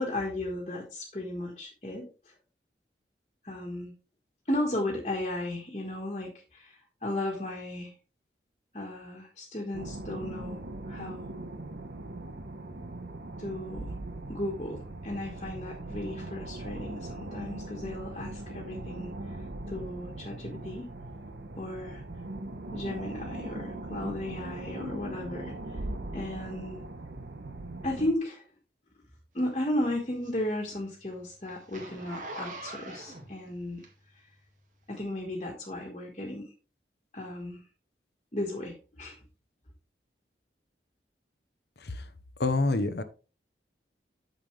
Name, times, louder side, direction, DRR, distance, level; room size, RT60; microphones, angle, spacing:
voice 1, 0.0-2.3 3.4-3.9 4.5-7.9 8.7-10.6 10.8-11.3 13.4-13.9 14.3-19.4 19.7-20.9 21.6-22.0 22.7-25.8 26.1-26.8 27.8-28.4 29.3-33.8 34.9-36.5 37.1-37.6 38.3-39.2, left 1 dB, 35° left, -1 dB, 1.6 m, -35 dB
sound 1, 9.7-28.1, right 2 dB, 75° right, 1.1 m, -40 dB
Zipper (clothing), 29.4-34.3 34.9-35.0, right 2 dB, 45° right, 2.1 m, -44 dB
voice 2, 42.4-43.0, left 2 dB, 70° left, 11 dB, 0.8 m, -27 dB
9.1 x 6.8 x 3.3 m, 0.34 s
head